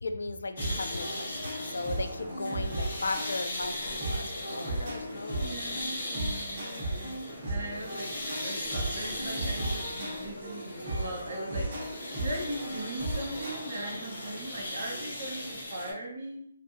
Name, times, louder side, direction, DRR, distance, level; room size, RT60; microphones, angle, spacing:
voice 1, 0.0-5.6, left 3 dB, 85° left, 8 dB, 0.3 m, -36 dB
sound 1, 0.6-15.9, left 1 dB, 50° left, 1.2 m, -38 dB
sound 2, 0.6-13.5, right 1 dB, 30° right, 1.1 m, -36 dB
voice 2, 4.5-5.0 5.4-6.9 7.4-16.5, right 1 dB, 55° right, -1 dB, 1.1 m, -40 dB
3.3 x 2.6 x 2.6 m, 0.69 s
hypercardioid pair, 170°, 0 cm